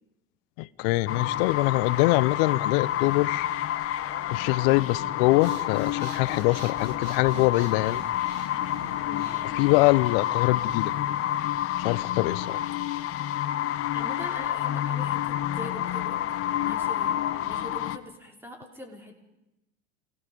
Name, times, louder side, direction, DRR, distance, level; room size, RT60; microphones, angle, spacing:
voice 1, 0.6-3.5 4.3-8.0 9.5-10.9 11.8-12.6, left 20 dB, 60° left, 0.9 m, -24 dB
sound 1, 1.1-18.0, left 12 dB, 45° left, 1.2 m, -29 dB
Breathing, 5.3-11.3, right 10 dB, 60° right, 2.2 m, -47 dB
voice 2, 13.9-16.3 16.5-19.1, equal, 5° right, 5.2 m, -43 dB
28.5 x 17.5 x 5.4 m
hypercardioid pair, 90°, 33 cm